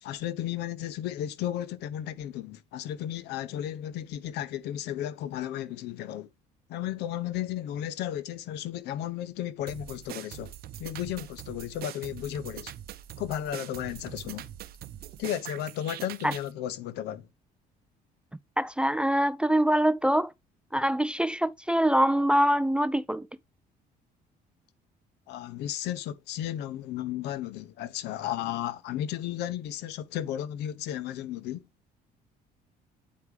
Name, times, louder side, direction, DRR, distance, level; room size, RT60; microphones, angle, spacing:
voice 1, 0.0-6.3 6.7-10.5 10.8-12.7 13.2-14.5 15.2-17.3 25.3-31.6, left 11 dB, 80° left, 0.7 m, -34 dB
sound 1, 9.7-16.5, right 12 dB, 65° right, 0.6 m, -43 dB
voice 2, 18.6-20.3 20.7-23.3, equal, 5° right, 0.3 m, -24 dB
8.6 x 4.7 x 3.3 m
cardioid pair, 110°, 17 cm